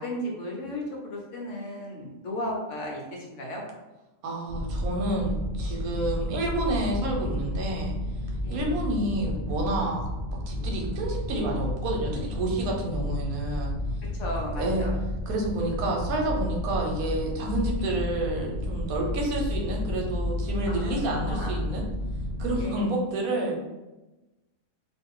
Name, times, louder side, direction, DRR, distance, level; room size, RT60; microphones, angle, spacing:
voice 1, 0.0-3.6 8.4-8.8 14.1-14.9 20.7-21.6 22.6-22.9, left 1 dB, 65° left, -1 dB, 1.0 m, -35 dB
voice 2, 4.2-7.9 8.5-10.1 10.5-13.7 14.6-14.9 15.3-21.8 22.4-23.5, right 1 dB, 90° right, 0 dB, 1.2 m, -29 dB
sound 1, 4.5-22.6, left 1 dB, 35° right, 0.5 m, -31 dB
2.5 x 2.3 x 3.6 m, 1.1 s
omnidirectional pair, 1.5 m